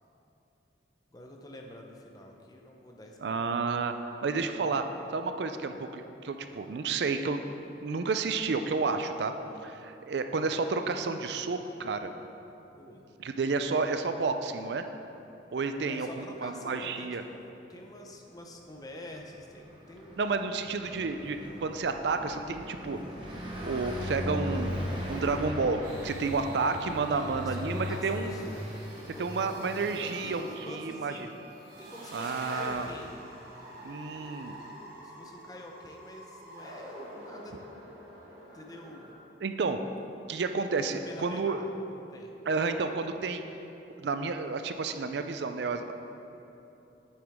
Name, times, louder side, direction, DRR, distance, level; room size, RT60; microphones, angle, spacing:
voice 1, 1.1-3.4 12.7-13.0 15.7-20.2 27.0-29.6 30.0-33.2 34.9-37.6 38.5-39.1 40.9-42.3, left 1 dB, 20° left, 1 dB, 0.7 m, -46 dB
voice 2, 3.2-3.9 4.2-4.8 5.1-7.5 7.8-9.3 9.6-12.1 13.2-14.8 15.5-17.2 20.2-23.0 23.6-28.3 29.2-31.1 32.1-32.9 33.8-34.5 39.4-39.8 40.3-41.6 42.5-43.4 44.0-45.9, right 4 dB, 70° right, 8 dB, 0.4 m, -31 dB
Car passing by, 19.2-30.2, left 1 dB, 25° right, 1.2 m, -38 dB
sound 1, 25.8-39.1, right 1 dB, 50° right, 1.8 m, -47 dB
8.9 x 8.0 x 3.5 m, 2.9 s
head